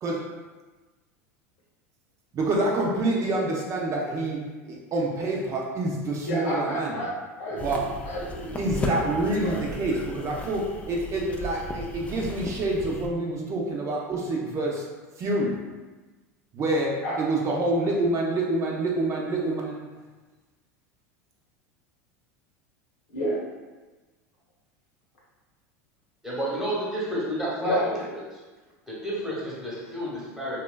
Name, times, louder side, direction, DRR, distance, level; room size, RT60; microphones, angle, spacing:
voice 1, 2.3-7.0 7.6-7.8 8.6-14.9 15.2-15.6 16.5-19.9, right 2 dB, 35° right, -2 dB, 0.5 m, -27 dB
voice 2, 6.2-7.1 7.4-9.0 9.4-10.0 17.0-17.2 23.1-23.4 27.6-28.1, equal, 75° left, -5 dB, 1.0 m, -31 dB
sound 1, 7.6-13.1, left 1 dB, 15° left, 0.3 m, -36 dB
voice 3, 26.2-28.0 28.3-28.4 28.9-30.6, equal, 5° right, -7 dB, 1.0 m, -30 dB
2.9 x 2.3 x 2.2 m, 1.3 s
hypercardioid pair, 95°, 8 cm